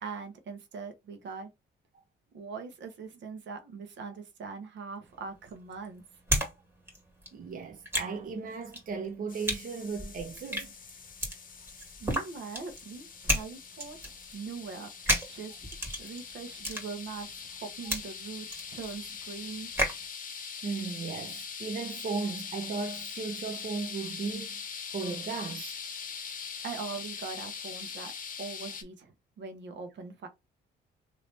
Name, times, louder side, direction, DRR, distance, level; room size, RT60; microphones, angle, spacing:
voice 1, 0.0-1.5 2.3-6.0 12.0-14.0 14.3-14.9 15.3-15.6 16.0-19.7 26.6-28.1 28.4-30.3, right 5 dB, 65° right, 1.1 m, -41 dB
sound 1, 5.1-6.5 6.8-20.0, equal, 10° right, 2.0 m, -33 dB
voice 2, 7.3-10.7 20.6-24.7 24.9-25.8, right 4 dB, 45° right, 0.7 m, -36 dB
sound 2, 9.3-28.8, left 6 dB, 45° left, 0.9 m, -42 dB
3.2 x 2.9 x 2.8 m
cardioid pair, 90°, 20 cm